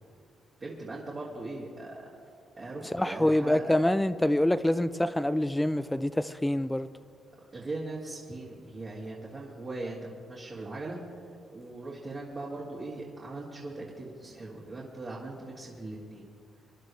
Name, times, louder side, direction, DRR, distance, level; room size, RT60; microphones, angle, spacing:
voice 1, 0.6-2.1 2.6-3.8 7.5-11.0 11.5-16.2, right 2 dB, 40° right, 2.3 m, -39 dB
voice 2, 2.8-6.9, left 1 dB, 5° left, 0.4 m, -26 dB
25.0 x 11.5 x 3.2 m
cardioid pair, 90°, 0 cm